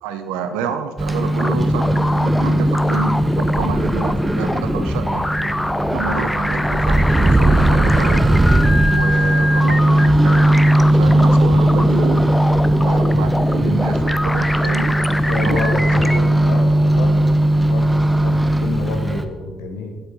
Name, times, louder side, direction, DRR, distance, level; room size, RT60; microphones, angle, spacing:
voice 1, 0.0-5.3 5.9-8.4 8.9-10.6 10.9-12.4 12.8-15.0 15.4-15.8 16.1-16.5 16.9-17.1, right 6 dB, 80° right, 8 dB, 0.6 m, -28 dB
Microwave oven, 1.0-19.2, right 1 dB, 15° right, 0.8 m, -17 dB
sound 1, 1.4-16.2, left 1 dB, 10° left, 0.5 m, -23 dB
voice 2, 15.3-16.1 16.4-17.2 17.7-20.0, left 4 dB, 80° left, 5 dB, 0.9 m, -28 dB
8.0 x 7.9 x 4.1 m, 1.4 s
hypercardioid pair, 45°, 0 cm